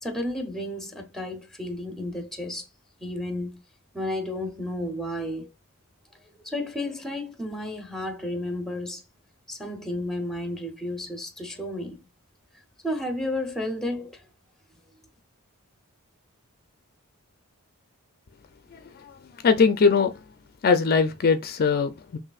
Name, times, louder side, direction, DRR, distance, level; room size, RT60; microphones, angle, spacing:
voice 1, 0.0-2.7 3.0-3.6 3.9-5.5 6.4-9.0 9.5-12.0 12.8-14.2, left 1 dB, ahead, 0.8 m, -32 dB
voice 2, 18.7-20.1 20.6-22.2, left 5 dB, 45° left, 0.4 m, -22 dB
5.8 x 2.6 x 2.4 m
head